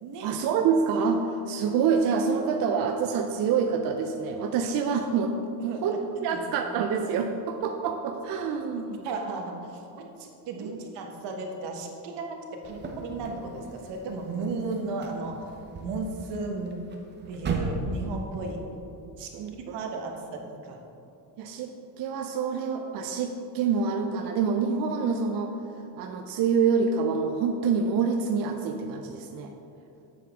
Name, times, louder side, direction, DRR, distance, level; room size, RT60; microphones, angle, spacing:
voice 1, 0.2-5.3 5.6-9.1 10.6-10.8 19.3-19.8 21.4-25.5 26.0-29.5, right 6 dB, 60° right, 4 dB, 0.5 m, -27 dB
voice 2, 9.0-9.8 10.2-15.4 15.8-16.8 17.3-18.6 19.2-19.3 19.7-20.8, right 3 dB, 85° right, 2 dB, 1.3 m, -34 dB
sound 1, 12.6-18.5, right 3 dB, 25° right, 0.7 m, -37 dB
9.5 x 7.1 x 3.6 m, 2.7 s
cardioid pair, 175°, 40 cm